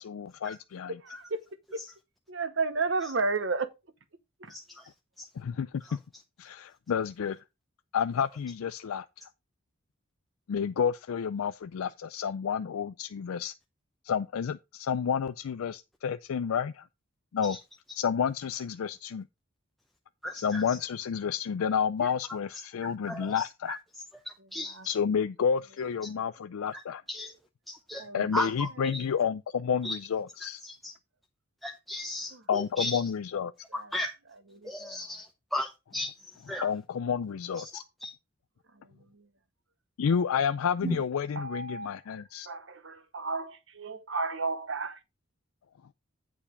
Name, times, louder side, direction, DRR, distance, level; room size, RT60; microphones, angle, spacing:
voice 1, 0.0-1.0 5.4-6.0 6.4-7.4 7.9-9.1 10.5-13.5 14.0-16.8 17.3-17.6 17.9-19.3 20.3-23.8 24.9-27.0 28.1-30.6 32.5-33.5 36.6-37.8 40.0-42.5, left 7 dB, 85° left, 0.4 m, -30 dB
voice 2, 0.9-1.4 1.7-1.8 2.3-3.7 4.4-4.5 24.7-24.9 28.0-28.3 32.3-32.4 33.7-33.9 34.5-35.0 38.8-39.2 41.4-42.0 42.5-45.0, right 3 dB, 60° right, 1.0 m, -33 dB
voice 3, 4.5-4.9 5.2-5.3 5.8-6.0 17.4-17.6 20.2-20.8 22.0-22.1 23.1-23.8 24.2-24.9 26.7-26.8 27.1-27.4 27.7-28.0 28.3-29.0 29.8-30.0 30.4-30.9 31.6-33.1 33.7-34.1 34.6-36.7 37.5-38.1 40.8-41.0, left 1 dB, ahead, 0.6 m, -36 dB
8.8 x 4.9 x 5.0 m
head